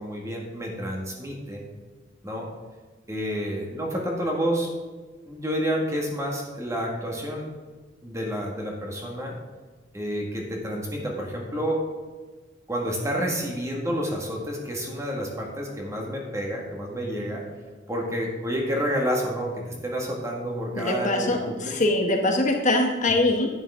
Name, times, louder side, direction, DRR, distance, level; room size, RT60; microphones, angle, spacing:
voice 1, 0.0-1.6 2.2-2.5 3.1-4.7 5.3-7.5 8.0-9.3 9.9-11.9 12.7-17.4 17.9-21.7, equal, 15° right, -1 dB, 1.8 m, -29 dB
voice 2, 20.8-23.5, left 2 dB, 40° left, 2 dB, 1.0 m, -23 dB
10.5 x 9.4 x 3.7 m, 1.3 s
head